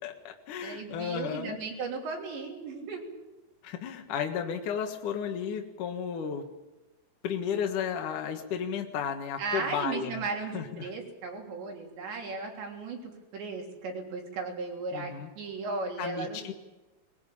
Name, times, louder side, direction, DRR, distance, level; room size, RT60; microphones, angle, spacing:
voice 1, 0.0-1.6 3.6-6.5 7.2-10.2 10.5-10.9 14.9-15.3 16.0-16.5, left 7 dB, 65° left, 4 dB, 2.1 m, -33 dB
voice 2, 0.6-3.1 9.4-16.4, right 4 dB, 60° right, 1 dB, 5.4 m, -36 dB
21.5 x 21.0 x 8.7 m, 1.1 s
omnidirectional pair, 6.0 m